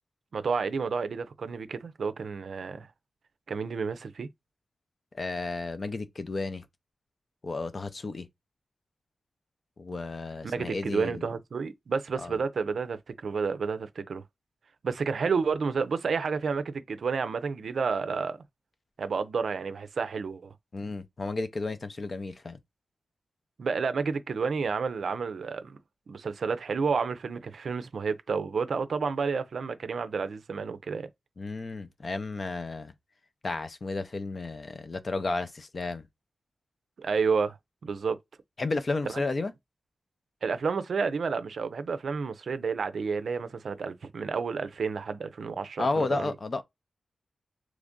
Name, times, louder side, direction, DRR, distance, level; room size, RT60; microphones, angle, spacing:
voice 1, 0.3-2.9 3.5-4.3 10.4-14.2 14.8-18.4 19.0-20.5 23.6-25.8 26.1-31.1 37.0-37.6 37.8-38.2 39.1-39.2 40.4-46.3, right 5 dB, 75° right, 0.4 m, -30 dB
voice 2, 5.1-6.6 7.4-8.3 9.8-11.3 12.2-12.3 20.7-22.6 31.4-32.9 33.4-36.1 38.6-39.5 45.8-46.6, left 3 dB, 45° left, 0.5 m, -32 dB
3.0 x 2.5 x 3.6 m
wide cardioid pair, 80°, 0 cm